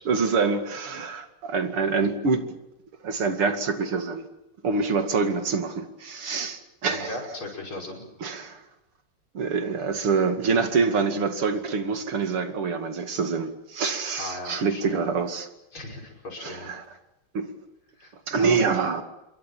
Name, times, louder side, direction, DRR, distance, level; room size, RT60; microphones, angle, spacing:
voice 1, 0.1-2.4 3.0-4.3 4.6-7.1 8.2-8.6 9.3-15.5 16.4-16.8 17.3-17.5 18.3-19.0, right 4 dB, 75° right, 3.2 m, -26 dB
voice 2, 6.9-8.1 14.2-15.0 15.7-16.7 18.0-18.6, left 2 dB, 65° left, 6.2 m, -37 dB
27.0 x 23.0 x 7.4 m
omnidirectional pair, 2.4 m